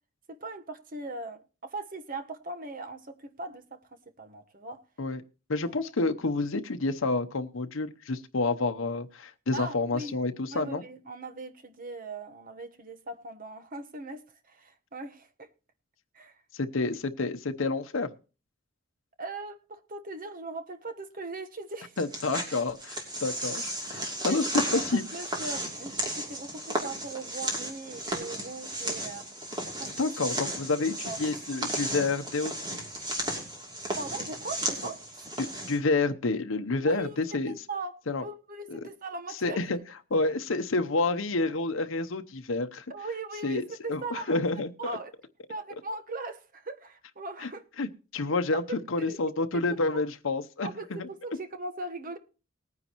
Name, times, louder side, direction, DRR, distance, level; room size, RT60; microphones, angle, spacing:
voice 1, 0.3-3.9 4.2-4.8 5.6-5.7 9.5-10.2 10.5-15.5 16.1-16.4 19.2-22.0 24.3-29.3 29.8-30.1 31.0-31.2 33.9-35.3 36.8-39.6 42.9-44.4 44.8-45.1 45.5-47.6 48.5-49.2 49.5-50.0 50.6-52.2, right 2 dB, 45° right, 1.2 m, -39 dB
voice 2, 5.5-10.8 16.5-18.1 22.0-25.0 30.0-32.7 35.4-37.5 38.1-38.2 38.7-38.8 39.4-39.8 40.1-42.8 43.4-43.6 43.9-44.9 47.4-47.5 47.8-47.9 48.1-51.1, left 3 dB, 80° left, 0.8 m, -29 dB
sound 1, 22.0-35.8, right 1 dB, 20° right, 2.9 m, -34 dB
19.5 x 9.6 x 3.0 m
head